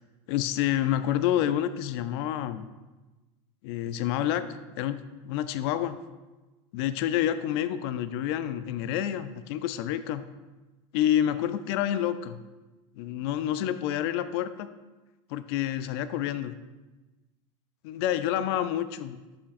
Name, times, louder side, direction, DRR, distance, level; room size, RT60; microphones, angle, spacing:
voice 1, 0.3-2.7 3.6-4.4 4.8-6.0 6.7-10.2 10.9-12.4 13.0-14.7 15.3-16.5 17.8-19.2, left 11 dB, 55° left, 12 dB, 0.4 m, -28 dB
11.5 x 5.8 x 2.5 m, 1.2 s
supercardioid pair, 145°, 16 cm